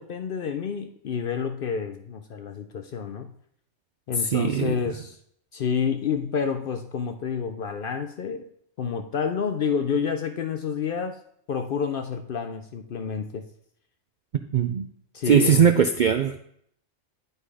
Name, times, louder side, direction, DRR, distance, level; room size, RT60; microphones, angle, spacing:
voice 1, 0.0-3.3 4.1-5.2 5.5-8.5 8.8-11.2 11.5-13.5 15.1-15.7, left 6 dB, 60° left, 7 dB, 0.6 m, -29 dB
voice 2, 4.3-4.7 14.5-14.9 15.3-16.4, right 7 dB, 70° right, 8 dB, 0.4 m, -20 dB
10.5 x 4.0 x 4.8 m, 0.68 s
omnidirectional pair, 1.3 m